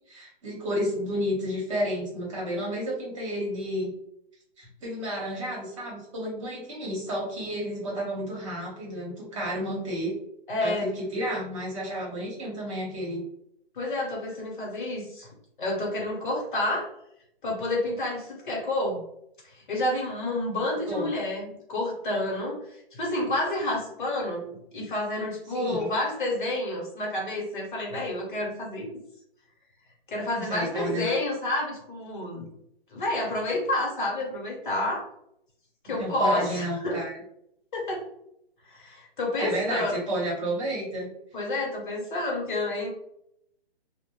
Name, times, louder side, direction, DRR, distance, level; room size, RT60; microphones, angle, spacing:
voice 1, 0.1-3.9 4.6-10.1 10.6-13.2 20.9-21.1 25.5-25.9 30.3-31.2 36.0-37.1 39.4-41.1, equal, 30° right, -4 dB, 0.9 m, -31 dB
voice 2, 10.5-10.9 13.7-15.3 15.6-16.9 17.4-19.0 19.4-28.9 30.1-32.5 32.9-35.0 35.8-37.0 37.7-38.0 38.7-40.0 41.3-42.9, left 1 dB, 55° left, -1 dB, 0.9 m, -29 dB
2.2 x 2.0 x 3.0 m, 0.76 s
hypercardioid pair, 160°, 31 cm